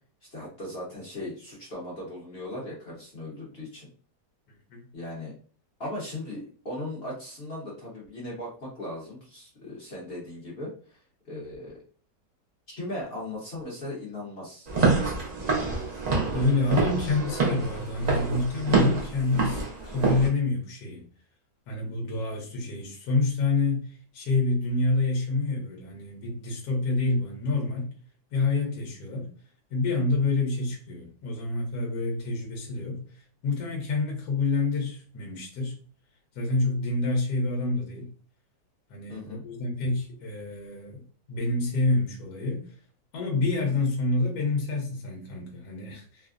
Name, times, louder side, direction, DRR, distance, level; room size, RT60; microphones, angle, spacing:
voice 1, 0.3-3.9 4.9-5.3 5.8-11.0 11.2-11.8 12.7-14.7 39.1-39.4, left 1 dB, 45° left, 0.9 m, -38 dB
Walk footsteps / Siren, 14.7-20.3, right 4 dB, 70° right, 0.3 m, -26 dB
voice 2, 16.3-21.0 21.7-23.9 24.1-27.9 28.3-29.3 29.7-33.0 33.4-35.7 36.3-38.1 38.9-41.0 41.3-42.7 43.1-46.3, left 3 dB, 65° left, 1.3 m, -27 dB
3.2 x 2.0 x 2.4 m
omnidirectional pair, 1.9 m